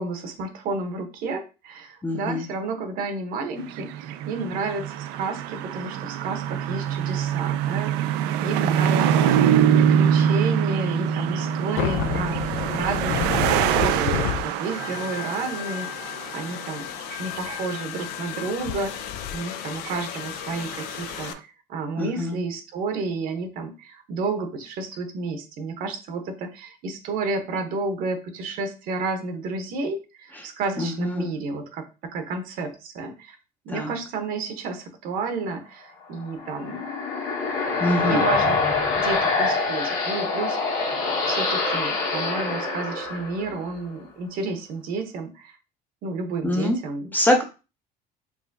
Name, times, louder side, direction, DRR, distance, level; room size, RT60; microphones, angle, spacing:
voice 1, 0.0-9.4 9.7-16.9 17.2-31.9 32.1-33.4 33.6-36.9 38.0-38.6 39.0-40.9 41.2-45.6 46.0-47.1, right 3 dB, 55° right, 6 dB, 0.9 m, -31 dB
voice 2, 2.0-2.4 22.0-22.4 30.8-31.3 33.7-33.9 37.8-38.2 46.4-46.8 47.1-47.4, left 1 dB, 10° left, 3 dB, 0.6 m, -24 dB
sound 1, 3.6-16.5 17.0-17.8 18.0-18.1 19.8-20.2 20.7-21.3, right 9 dB, 80° right, 0.4 m, -24 dB
sound 2, 11.8-21.3, left 11 dB, 75° left, 0.5 m, -31 dB
sound 3, 36.2-43.8, left 3 dB, 55° left, 1.4 m, -25 dB
4.8 x 2.7 x 2.6 m, 0.31 s
cardioid pair, 145°, 17 cm